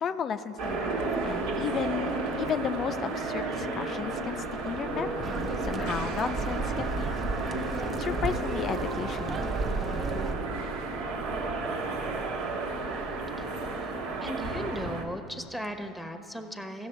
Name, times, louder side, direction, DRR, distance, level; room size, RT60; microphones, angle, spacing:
voice 1, 0.0-7.3 7.7-9.4, left 7 dB, 40° left, 10 dB, 0.5 m, -34 dB
sound 1, 0.6-15.0, right 3 dB, 70° right, 1.2 m, -32 dB
sound 2, 3.3-7.0, left 7 dB, 80° left, 0.7 m, -48 dB
sound 3, 5.2-10.3, right 3 dB, 35° right, 0.7 m, -34 dB
voice 2, 14.2-16.9, equal, 5° right, 6 dB, 1.0 m, -37 dB
15.5 x 6.1 x 4.5 m, 2.6 s
hypercardioid pair, 75°, 0 cm